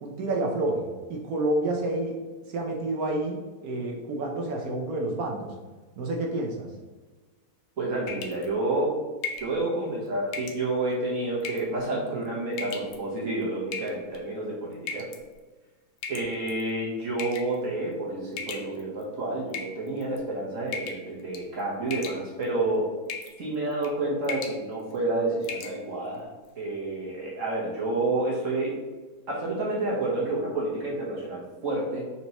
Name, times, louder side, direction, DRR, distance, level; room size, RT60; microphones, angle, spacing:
voice 1, 0.0-2.2 2.5-5.6 6.0-6.7, right 2 dB, 65° right, 0 dB, 0.9 m, -29 dB
voice 2, 7.8-8.9 9.4-15.0 16.1-22.9 23.4-26.3 26.6-28.8 29.3-32.1, right 2 dB, 45° right, -4 dB, 1.3 m, -29 dB
sound 1, 8.1-8.5 9.2-9.5 10.3-10.6 11.4-11.8 12.5-13.0 13.7-14.2 14.9-15.2 16.0-16.6 17.2-17.6 18.4-19.0 19.5-20.2 20.7-21.1 21.3-21.6 21.9-22.5 23.1-23.4 23.7-23.9 24.2-24.6 25.0-25.1 25.4-25.8, left 5 dB, 70° left, 1.1 m, -36 dB
4.4 x 4.1 x 2.9 m, 1.3 s
omnidirectional pair, 2.1 m